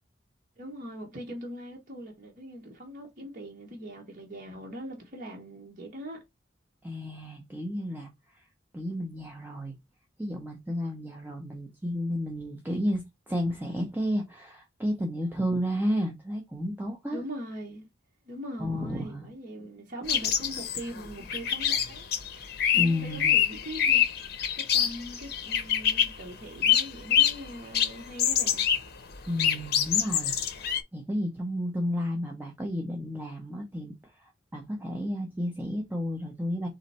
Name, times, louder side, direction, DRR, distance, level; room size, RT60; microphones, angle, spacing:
voice 1, 0.6-6.2 17.1-17.9 18.3-22.1 22.7-28.7, equal, 45° right, 1.1 m, -41 dB
voice 2, 6.8-8.5 8.7-9.7 10.2-17.2 18.6-19.3 22.7-23.4 29.2-36.7, equal, 10° right, 0.8 m, -32 dB
sound 1, 20.1-26.2 26.6-27.5 27.7-28.9 29.1-30.8, left 9 dB, 55° left, 0.8 m, -26 dB
4.0 x 3.2 x 4.2 m
head